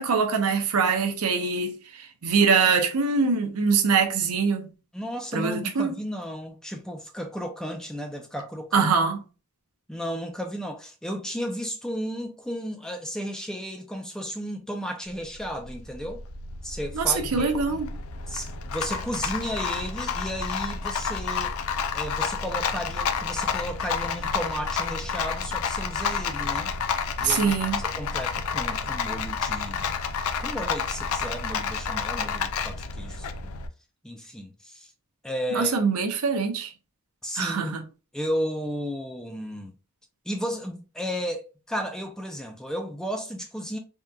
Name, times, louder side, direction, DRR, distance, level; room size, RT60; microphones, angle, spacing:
voice 1, 0.0-4.7 5.3-5.9 8.7-9.2 16.9-17.9 27.2-27.8 35.5-36.7 37.4-37.8, right 5 dB, 80° right, 0.6 m, -23 dB
voice 2, 4.9-8.9 9.9-16.3 16.6-17.9 18.3-21.5 21.9-26.7 27.2-29.9 30.4-33.5 34.0-34.9 35.2-35.8 37.2-37.8 38.1-39.7 40.3-43.8, equal, 5° left, 0.4 m, -33 dB
Rattle, 15.1-33.7, left 6 dB, 70° left, 0.4 m, -30 dB
3.6 x 2.7 x 2.2 m
head